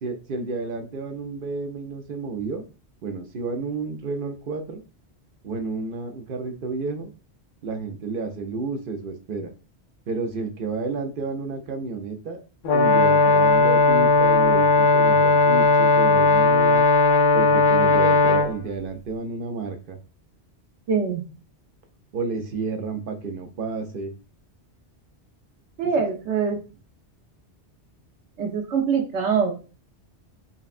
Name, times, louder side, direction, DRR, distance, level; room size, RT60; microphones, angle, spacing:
voice 1, 0.0-2.6 3.0-4.8 5.4-7.1 7.6-9.5 10.1-12.4 12.7-16.9 17.3-20.0 22.1-24.1 26.0-26.1, right 3 dB, 55° right, 5 dB, 0.7 m, -31 dB
Brass instrument, 12.6-18.5, left 3 dB, 55° left, 0.7 m, -17 dB
voice 2, 20.9-21.3 25.8-26.6 28.4-29.5, right 6 dB, 90° right, 3 dB, 1.1 m, -23 dB
5.2 x 2.2 x 2.5 m, 0.34 s
omnidirectional pair, 1.1 m